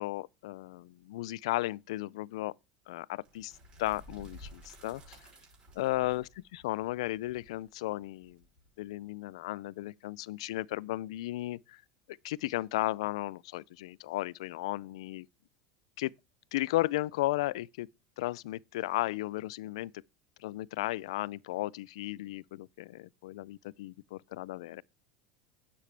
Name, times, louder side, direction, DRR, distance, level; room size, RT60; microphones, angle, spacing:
voice 1, 0.0-2.5 2.9-3.5 3.8-5.2 5.8-8.4 8.8-11.8 12.2-15.3 16.0-16.1 16.5-17.9 18.2-19.9 20.4-24.8, left 17 dB, 85° left, 0.4 m, -35 dB
sound 1, 3.2-9.0, equal, 30° right, 5.6 m, -53 dB
10.0 x 7.4 x 3.3 m
supercardioid pair, 145°, 3 cm